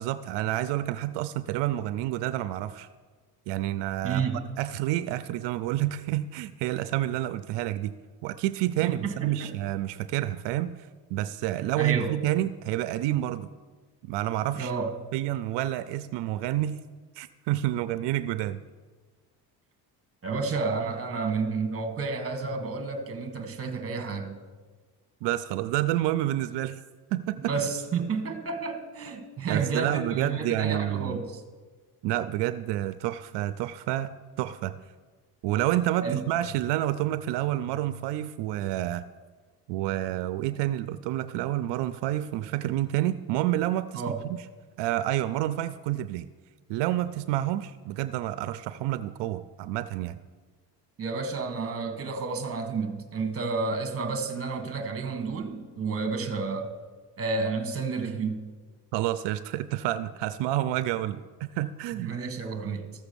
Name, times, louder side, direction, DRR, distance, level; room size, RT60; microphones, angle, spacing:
voice 1, 0.0-2.9 3.5-4.3 4.6-7.9 8.2-13.5 14.0-14.7 15.1-16.8 17.2-18.6 25.2-26.8 27.1-27.5 29.5-31.2 32.0-34.8 35.4-39.1 39.7-44.0 44.8-46.3 46.7-50.2 58.9-62.1, right 14 dB, 85° right, 13 dB, 0.5 m, -29 dB
voice 2, 4.0-4.4 8.8-9.5 11.7-12.1 14.6-14.9 20.2-24.4 27.4-31.4 36.0-36.2 43.9-44.2 51.0-56.7 57.2-58.4 62.0-62.9, right 4 dB, 35° right, 7 dB, 1.5 m, -30 dB
13.5 x 7.1 x 6.8 m, 1.4 s
cardioid pair, 130°, 41 cm